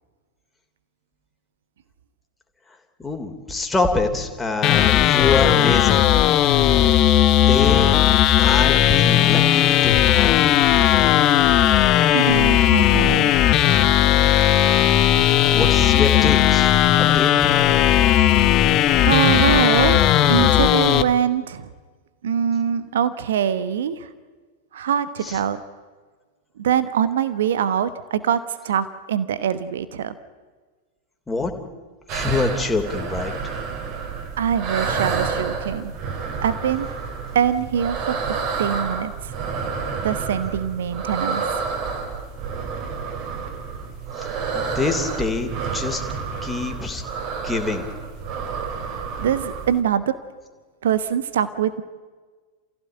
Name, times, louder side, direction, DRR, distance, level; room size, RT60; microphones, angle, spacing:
voice 1, 3.0-6.0 7.5-7.9 8.3-10.6 15.5-17.6 25.2-25.3 31.3-31.5 32.1-33.3 44.2-44.3 44.5-46.0 46.4-47.0 47.4-47.8, left 3 dB, 10° left, 3 dB, 3.1 m, -25 dB
sound 1, 4.6-21.0, left 12 dB, 35° left, 1.0 m, -16 dB
voice 2, 12.1-13.3 19.0-21.7 22.2-24.1 24.7-25.6 26.6-30.1 34.4-35.9 36.4-36.9 37.3-39.3 40.0-41.4 48.9-50.1 50.8-51.8, right 9 dB, 60° right, 15 dB, 1.1 m, -23 dB
sound 2, 32.1-49.8, right 5 dB, 40° right, 3.4 m, -29 dB
28.5 x 16.0 x 9.0 m, 1.4 s
figure-of-eight pair, 90°, 0 cm